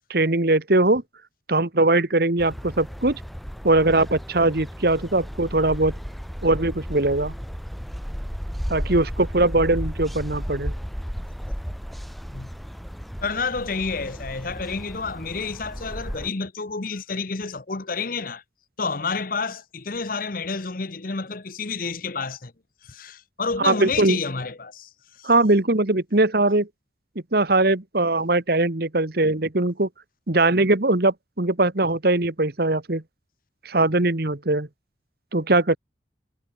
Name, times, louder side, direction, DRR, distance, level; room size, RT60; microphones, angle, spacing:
voice 1, 0.1-1.0 1.5-3.2 3.6-5.9 6.4-7.3 8.7-10.7 23.6-24.2 25.2-26.7 27.3-29.9 30.3-33.0 33.6-34.7 35.3-35.8, right 2 dB, 55° right, 1.5 m, -21 dB
sound 1, 2.4-16.3, equal, ahead, 3.1 m, -34 dB
voice 2, 13.2-18.4 18.8-22.5 22.8-24.9 25.2-25.3, left 4 dB, 45° left, 1.0 m, -29 dB
head